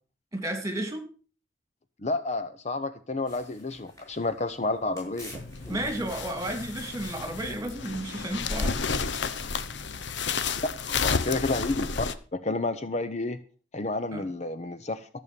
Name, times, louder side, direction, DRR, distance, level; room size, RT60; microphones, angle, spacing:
voice 1, 0.3-1.0 5.7-8.9 14.1-14.2, right 1 dB, 15° right, 6 dB, 2.6 m, -32 dB
voice 2, 2.0-5.3 10.9-12.1 12.3-13.4 13.7-15.1, left 2 dB, 35° left, 11 dB, 0.8 m, -30 dB
sound 1, 3.2-10.0, equal, 15° left, 7.3 m, -50 dB
sound 2, 5.3-12.1, left 5 dB, 65° left, 0.9 m, -31 dB
14.0 x 6.9 x 6.8 m, 0.40 s
head